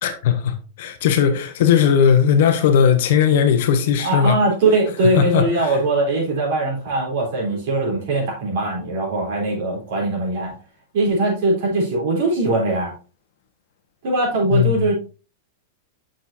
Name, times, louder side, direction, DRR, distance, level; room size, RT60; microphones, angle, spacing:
voice 1, 0.0-4.4 5.2-5.8 14.5-14.9, left 8 dB, 50° left, 0.9 m, -18 dB
voice 2, 4.0-10.5 10.9-12.9 14.0-14.9, right 2 dB, 45° right, 3.6 m, -21 dB
7.9 x 6.2 x 2.8 m
supercardioid pair, 180°, 0 cm